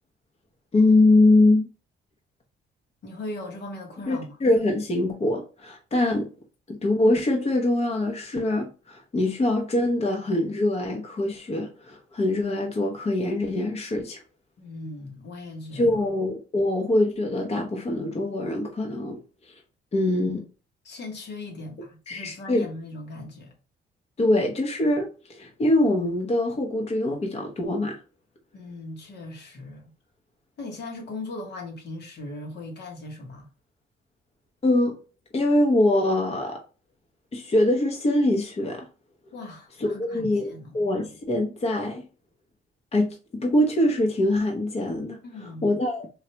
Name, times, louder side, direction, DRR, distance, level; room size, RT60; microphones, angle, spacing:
voice 1, 0.7-1.7 4.1-6.3 6.7-14.2 15.7-19.2 19.9-20.4 22.1-22.6 24.2-28.0 34.6-34.9 35.3-36.6 37.3-38.9 39.8-42.0 42.9-45.2 45.6-46.1, left 1 dB, 30° left, 0.8 m, -23 dB
voice 2, 3.0-4.4 14.6-16.0 20.8-23.5 28.5-29.9 30.6-33.5 39.3-40.8 45.2-45.8, left 2 dB, 60° left, 1.0 m, -39 dB
3.2 x 2.4 x 2.8 m
cardioid pair, 90°, 20 cm